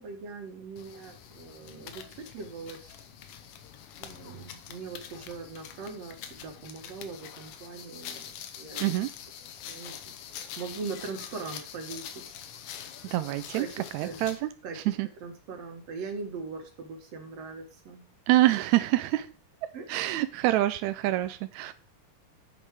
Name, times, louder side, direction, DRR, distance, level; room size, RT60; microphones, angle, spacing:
voice 1, 0.0-3.0 4.0-9.0 9.7-9.9 10.6-12.1 13.5-14.3 14.6-14.9 15.2-18.1 19.7-19.9, right 4 dB, 55° right, 3 dB, 2.7 m, -41 dB
sound 1, 0.8-14.5, left 9 dB, 75° left, 2.4 m, -44 dB
voice 2, 13.1-13.7 13.9-14.5 14.9-15.1 18.3-19.3 19.9-21.7, right 15 dB, 85° right, 11 dB, 1.6 m, -26 dB
9.6 x 5.3 x 4.8 m, 0.35 s
omnidirectional pair, 3.8 m